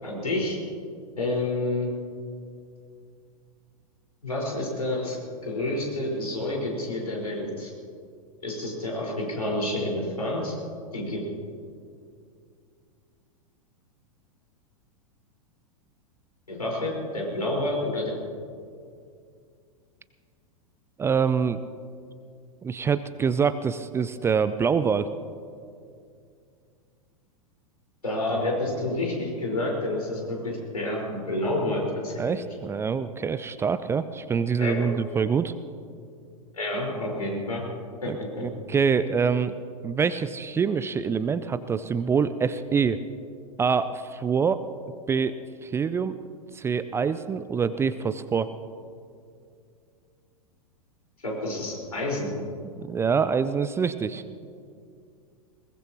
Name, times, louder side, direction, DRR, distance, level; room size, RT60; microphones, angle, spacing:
voice 1, 0.0-0.6 1.2-1.9 4.2-5.2 5.4-7.7 8.4-10.5 10.9-11.2 16.5-18.1 28.0-32.4 34.6-34.9 36.5-37.6 38.0-38.4 51.2-52.3, left 1 dB, 80° left, -2 dB, 5.0 m, -29 dB
voice 2, 21.0-21.6 22.6-25.1 32.2-35.5 38.1-39.5 39.8-43.0 43.6-44.6 45.1-45.4 45.6-46.2 46.5-48.5 52.8-54.2, right 6 dB, 15° right, 13 dB, 0.4 m, -25 dB
21.5 x 19.5 x 3.0 m, 2.3 s
figure-of-eight pair, 95°, 19 cm